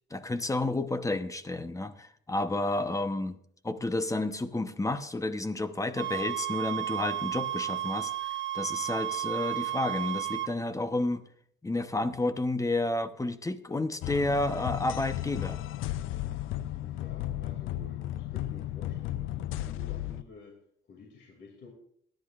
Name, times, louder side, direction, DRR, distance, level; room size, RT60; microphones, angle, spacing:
voice 1, 0.1-3.4 3.6-8.1 8.5-11.2 11.6-15.6, left 2 dB, 15° left, 11 dB, 0.9 m, -31 dB
sound 1, 6.0-10.5, right 13 dB, 70° right, 0.8 m, -33 dB
sound 2, 14.0-20.2, left 14 dB, 85° left, 0.5 m, -34 dB
voice 2, 16.7-20.5 20.9-21.7, left 4 dB, 65° left, 1 dB, 2.7 m, -50 dB
21.5 x 10.5 x 2.5 m, 0.65 s
cardioid pair, 90°, 20 cm